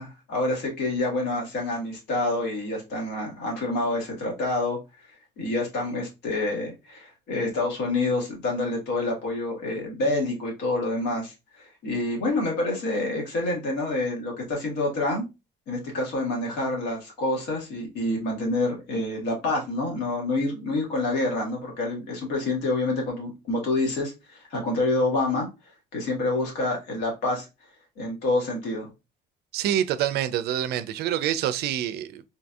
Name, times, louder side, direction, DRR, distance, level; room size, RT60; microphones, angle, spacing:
voice 1, 0.0-15.2 15.7-25.5 25.9-27.5 28.0-28.9, left 2 dB, 80° left, 1.6 m, -27 dB
voice 2, 29.5-32.3, right 11 dB, 70° right, 0.4 m, -26 dB
3.7 x 2.6 x 2.3 m
cardioid pair, 110°, 17 cm